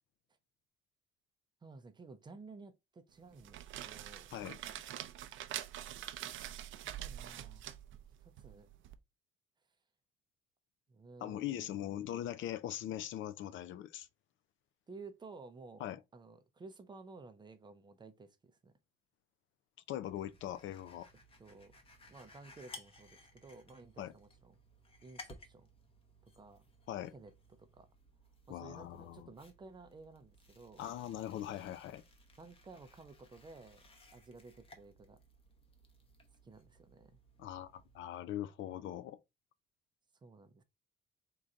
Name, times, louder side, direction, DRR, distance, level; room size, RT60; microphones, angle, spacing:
voice 1, 1.6-4.3 6.8-7.7 8.2-8.7 10.9-11.9 14.9-15.9 16.1-18.7 21.4-21.7 22.1-24.5 25.0-25.7 26.2-26.6 27.1-27.9 28.5-30.9 32.4-33.8 34.1-35.2 36.4-37.2 40.2-40.6, right 3 dB, 20° right, 0.5 m, -54 dB
sound 1, 3.3-8.9, right 12 dB, 70° right, 0.5 m, -45 dB
voice 2, 11.2-14.1 15.8-16.0 19.9-21.1 24.0-24.1 26.9-27.1 28.5-29.3 30.8-32.0 37.4-39.2, left 12 dB, 65° left, 0.4 m, -41 dB
sound 2, 20.1-38.0, left 2 dB, 25° left, 0.8 m, -59 dB
3.8 x 2.6 x 4.3 m
cardioid pair, 165°, 21 cm